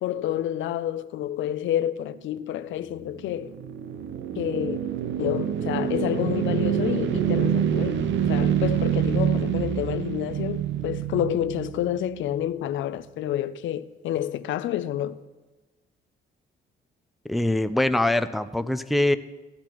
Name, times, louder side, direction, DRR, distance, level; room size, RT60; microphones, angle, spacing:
voice 1, 0.0-3.5 4.4-15.2, left 11 dB, 75° left, 0.5 m, -29 dB
sound 1, 3.1-12.4, right 9 dB, 70° right, 0.7 m, -26 dB
voice 2, 17.3-19.2, left 1 dB, ahead, 0.4 m, -23 dB
16.0 x 10.5 x 3.0 m
cardioid pair, 90°, 20 cm